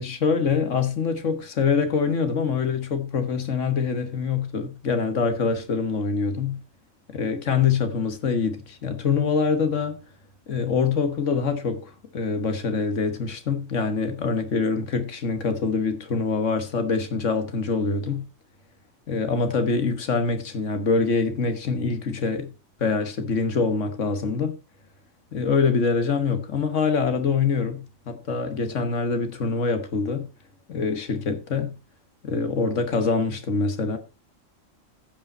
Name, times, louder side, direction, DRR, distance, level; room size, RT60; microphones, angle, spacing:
voice 1, 0.0-6.6 7.1-10.0 10.5-18.3 19.1-22.5 22.8-24.6 25.3-30.3 30.7-31.8 32.2-34.0, left 5 dB, 65° left, 1.7 m, -25 dB
15.0 x 5.4 x 4.2 m
omnidirectional pair, 1.4 m